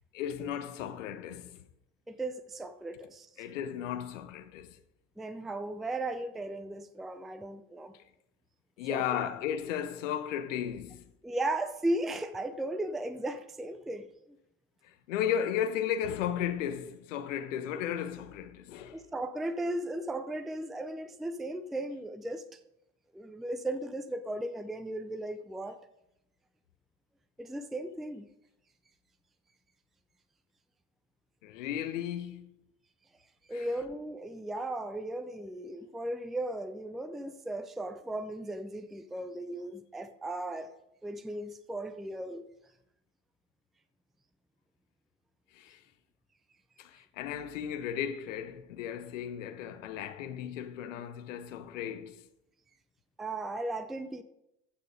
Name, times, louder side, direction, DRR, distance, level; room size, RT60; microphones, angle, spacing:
voice 1, 0.1-1.6 3.4-4.8 8.8-11.1 14.8-19.0 31.4-32.6 33.5-33.7 45.5-45.8 46.8-52.3, left 9 dB, 65° left, 1.1 m, -35 dB
voice 2, 2.1-3.3 5.2-7.9 8.9-9.1 11.2-14.1 18.9-22.6 23.1-25.8 27.4-28.3 33.5-40.7 41.0-42.4 53.2-54.2, right 1 dB, ahead, 0.5 m, -36 dB
14.5 x 6.6 x 5.0 m
figure-of-eight pair, 65°, 41 cm